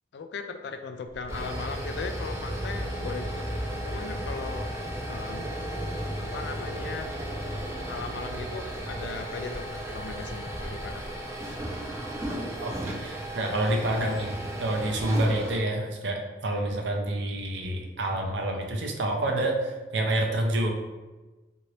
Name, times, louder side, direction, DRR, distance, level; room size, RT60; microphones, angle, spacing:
voice 1, 0.1-4.7 5.1-5.5 6.2-7.1 7.9-11.0, left 4 dB, 65° left, 7 dB, 0.3 m, -38 dB
sound 1, 1.1-15.6, right 1 dB, 15° right, 0.4 m, -34 dB
voice 2, 12.6-14.3 14.6-20.7, right 1 dB, 80° right, 2 dB, 0.5 m, -28 dB
2.8 x 2.6 x 3.0 m, 1.2 s
head